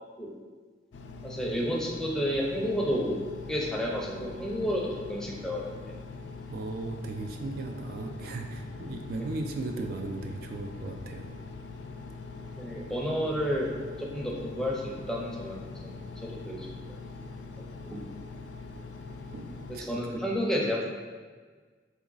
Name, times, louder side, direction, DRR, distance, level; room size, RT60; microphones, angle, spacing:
Engine, 0.9-19.8, left 3 dB, 85° left, 0.4 m, -43 dB
voice 1, 1.2-3.2 3.5-5.8 12.6-13.7 14.0-15.6 15.8-16.8 17.6-18.0 19.9-20.8, equal, 5° left, -2 dB, 0.5 m, -31 dB
voice 2, 6.5-11.3 19.3-19.5 19.7-20.2, right 2 dB, 55° right, 3 dB, 0.3 m, -36 dB
3.6 x 3.0 x 3.9 m, 1.4 s
head